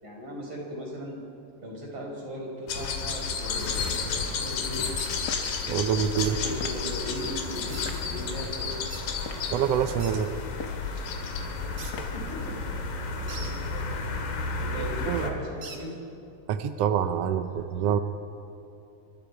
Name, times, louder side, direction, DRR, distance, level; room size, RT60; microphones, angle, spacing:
voice 1, 0.0-1.2 1.6-4.8 5.9-7.8 8.1-8.9 11.8-14.2 14.6-15.9 17.2-17.9, right 1 dB, 35° right, -1 dB, 5.9 m, -38 dB
sound 1, 2.7-15.3, left 4 dB, 85° left, 3.7 m, -32 dB
sound 2, 5.0-5.1 6.2-6.4 7.7-7.9 8.9-9.1 10.0-10.2 11.8-12.0 13.3-13.5 15.6-15.8, right 5 dB, 55° right, 3.0 m, -41 dB
sound 3, 5.3-5.5 6.6-6.8 7.8-8.0 9.1-9.5 10.5-10.9 11.9-12.2, left 5 dB, 65° left, 1.0 m, -39 dB
voice 2, 5.7-6.4 9.5-10.3 15.1-15.3 16.5-18.0, right 9 dB, 75° right, 9 dB, 1.4 m, -26 dB
27.0 x 23.5 x 4.8 m, 2.8 s
omnidirectional pair, 3.8 m